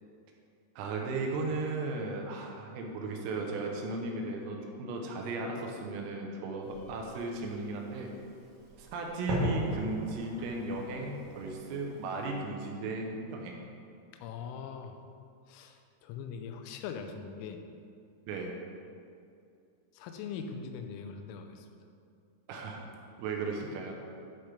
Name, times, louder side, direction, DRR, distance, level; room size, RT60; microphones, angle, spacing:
voice 1, 0.8-8.1 8.8-13.6 18.3-18.5 22.5-22.8 23.2-24.0, right 3 dB, 85° right, 1 dB, 3.6 m, -36 dB
Fireworks, 6.6-12.3, equal, 60° right, 2.8 m, -39 dB
voice 2, 14.2-15.0 15.5-17.6 20.0-21.7, left 6 dB, 85° left, 6 dB, 3.1 m, -41 dB
11.5 x 6.0 x 3.4 m, 2.4 s
omnidirectional pair, 6.0 m